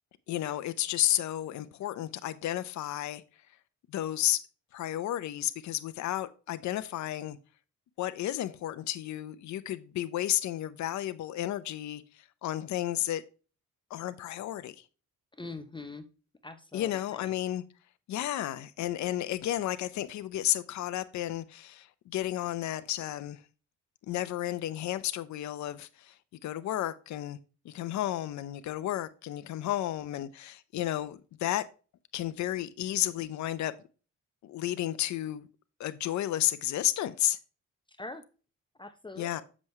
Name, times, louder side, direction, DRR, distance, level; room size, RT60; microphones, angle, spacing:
voice 1, 0.3-3.2 3.9-4.4 4.7-7.4 8.0-12.0 12.4-13.2 13.9-14.8 16.7-17.6 18.1-23.4 24.1-26.1 26.4-27.4 27.6-31.6 32.1-33.7 34.4-35.5 35.8-37.4 39.2-39.4, left 13 dB, 70° left, 0.7 m, -32 dB
voice 2, 15.4-16.0 16.4-17.3 38.0-38.2 38.8-39.4, left 3 dB, 15° left, 0.8 m, -43 dB
7.5 x 6.0 x 3.1 m
cardioid pair, 90°, 30 cm